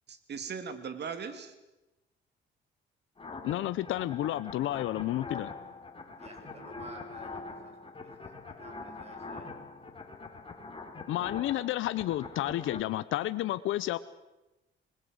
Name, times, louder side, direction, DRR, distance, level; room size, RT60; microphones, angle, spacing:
voice 1, 0.1-1.5, right 6 dB, 60° right, 9 dB, 3.1 m, -39 dB
sound 1, 3.2-12.8, left 3 dB, 25° left, 3.8 m, -44 dB
voice 2, 3.4-5.5 11.1-14.0, left 14 dB, 85° left, 13 dB, 0.9 m, -31 dB
voice 3, 6.2-9.5, right 1 dB, 30° right, 4 dB, 7.9 m, -51 dB
26.0 x 20.0 x 8.0 m, 0.99 s
cardioid pair, 90°, 20 cm